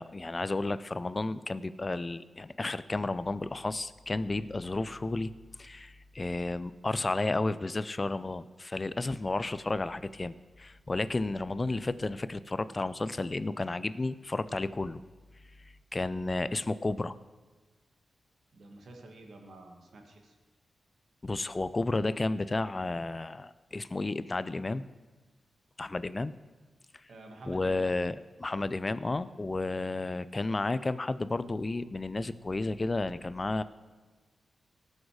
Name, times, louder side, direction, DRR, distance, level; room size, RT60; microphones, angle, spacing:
voice 1, 0.0-5.3 5.6-15.0 15.9-17.1 21.2-24.8 25.8-26.3 27.5-33.6, left 2 dB, 30° left, 15 dB, 0.4 m, -32 dB
voice 2, 18.5-20.3 27.1-27.9, right 2 dB, 70° right, 2 dB, 1.8 m, -49 dB
18.5 x 6.5 x 4.8 m, 1.3 s
cardioid pair, 90°, 0 cm